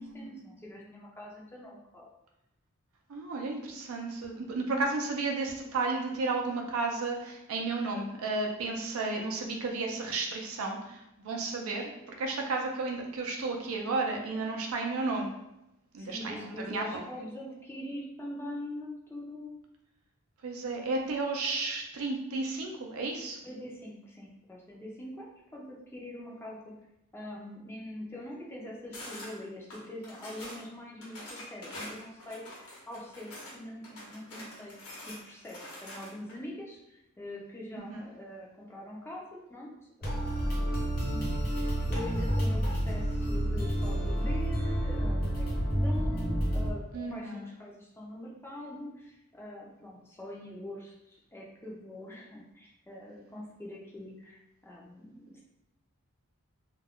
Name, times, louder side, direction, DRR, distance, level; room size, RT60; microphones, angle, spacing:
voice 1, 0.0-2.1 16.0-19.5 23.4-26.8 27.1-32.4 32.9-39.7 40.0-40.6 41.5-46.8 47.1-55.4, left 1 dB, 10° left, -3 dB, 0.4 m, -43 dB
voice 2, 3.1-15.3 15.9-17.0 20.4-23.4 37.8-38.0 46.9-47.5, right 3 dB, 75° right, 1 dB, 0.5 m, -33 dB
sound 1, 28.9-29.3 29.7-30.6 31.0-33.5 33.8-36.3, left 1 dB, 75° left, 0.8 m, -45 dB
sound 2, 40.0-46.7, equal, 45° left, 0.8 m, -29 dB
2.3 x 2.1 x 3.5 m, 0.88 s
head